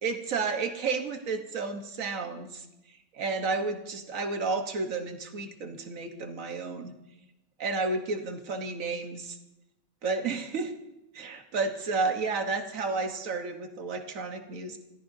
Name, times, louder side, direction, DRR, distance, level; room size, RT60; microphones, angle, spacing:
voice 1, 0.0-2.6 3.1-6.9 7.6-9.4 10.0-10.7 11.1-14.8, right 4 dB, 75° right, 6 dB, 1.6 m, -31 dB
28.0 x 14.5 x 2.7 m, 0.92 s
omnidirectional pair, 1.4 m